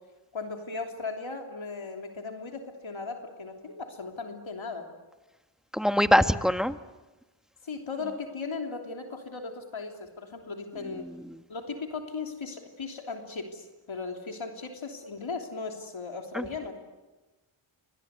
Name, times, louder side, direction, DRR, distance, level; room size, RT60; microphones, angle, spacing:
voice 1, 0.3-4.9 7.6-11.1 11.5-16.7, left 4 dB, 70° left, 3 dB, 3.3 m, -37 dB
voice 2, 5.7-6.8 16.3-16.4, equal, ahead, 9 dB, 1.3 m, -22 dB
29.0 x 25.0 x 8.3 m, 1.2 s
cardioid pair, 55°, 50 cm